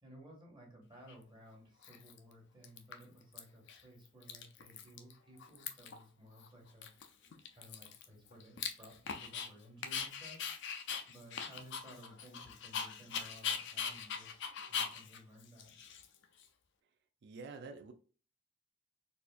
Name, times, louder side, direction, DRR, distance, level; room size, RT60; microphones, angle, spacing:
voice 1, 0.0-7.2 7.5-10.8 11.1-15.8, equal, 25° right, 1.4 m, -57 dB
Dog, 1.1-1.2 1.8-2.3 2.6-3.4 3.7-3.8 4.1-5.1 5.4-6.0 6.4-6.5 6.8-9.5 9.8-16.4, left 7 dB, 60° left, 0.5 m, -41 dB
voice 2, 17.2-17.9, right 4 dB, 55° right, 0.4 m, -47 dB
4.1 x 2.5 x 2.4 m
head